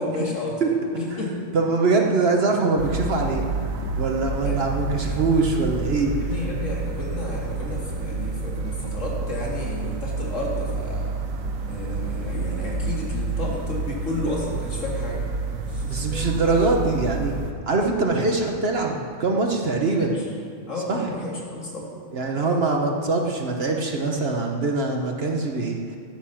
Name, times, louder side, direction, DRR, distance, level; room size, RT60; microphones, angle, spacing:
voice 1, 0.0-1.4 4.4-4.6 4.9-5.2 6.2-11.1 11.7-15.2 15.7-16.0 19.8-20.2 20.7-21.9 22.3-22.6, left 2 dB, 70° left, -3 dB, 2.5 m, -32 dB
voice 2, 1.5-3.4 4.0-6.1 15.9-17.3 17.7-20.2 20.9-21.0 22.1-26.0, right 3 dB, 50° right, 2 dB, 1.3 m, -23 dB
sound 1, 2.8-17.5, right 3 dB, 90° right, 1.3 m, -29 dB
13.5 x 9.3 x 5.9 m, 2.4 s
omnidirectional pair, 1.4 m